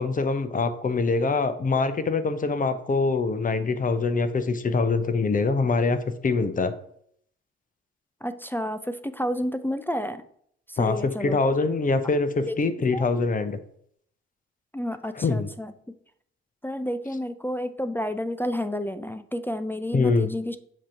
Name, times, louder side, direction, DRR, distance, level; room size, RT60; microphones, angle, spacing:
voice 1, 0.0-6.7 10.8-13.6 15.2-15.5 19.9-20.3, left 4 dB, 25° left, 11 dB, 0.8 m, -24 dB
voice 2, 8.2-10.2 10.7-11.4 12.5-12.6 12.9-13.0 14.7-15.7 16.6-20.6, equal, 5° left, 9 dB, 0.4 m, -30 dB
7.3 x 2.9 x 4.6 m, 0.66 s
hypercardioid pair, 45°, 31 cm